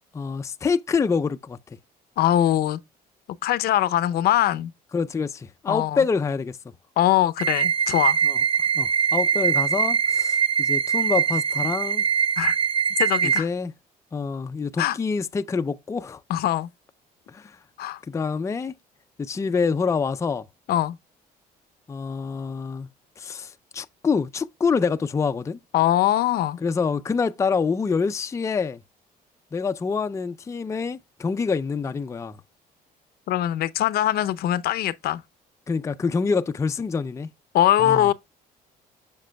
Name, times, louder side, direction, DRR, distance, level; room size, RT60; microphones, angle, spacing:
voice 1, 0.1-1.6 4.9-6.6 8.2-8.4 8.8-12.0 13.2-13.7 14.1-16.2 17.3-17.6 18.1-18.7 19.2-20.5 21.9-22.9 23.2-25.6 26.6-28.8 29.5-32.4 35.7-37.3 37.8-38.1, left 5 dB, 15° left, 0.4 m, -26 dB
voice 2, 2.2-2.8 3.4-4.7 5.7-6.0 7.0-8.2 12.4-12.6 13.0-13.5 14.8-15.0 16.3-16.7 17.8-18.0 20.7-21.0 25.7-26.6 33.3-35.2 37.5-38.1, left 12 dB, 70° left, 0.6 m, -22 dB
sound 1, 7.4-13.4, right 7 dB, 35° right, 0.6 m, -22 dB
7.4 x 6.6 x 2.2 m
cardioid pair, 110°, 17 cm